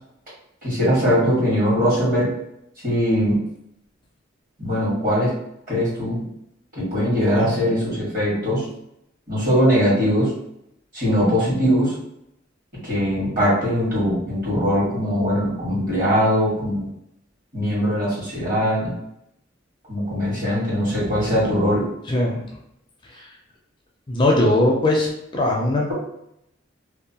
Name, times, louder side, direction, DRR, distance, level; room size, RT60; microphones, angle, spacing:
voice 1, 0.6-2.3 2.8-3.4 4.6-5.3 5.7-6.3 6.7-8.6 9.3-10.3 10.9-11.9 12.8-16.9 17.5-18.9 19.9-21.9, equal, 45° right, -7 dB, 1.5 m, -21 dB
voice 2, 22.1-22.4 23.1-23.3 24.1-25.9, left 1 dB, 25° left, -2 dB, 0.4 m, -20 dB
2.6 x 2.1 x 2.8 m, 0.79 s
head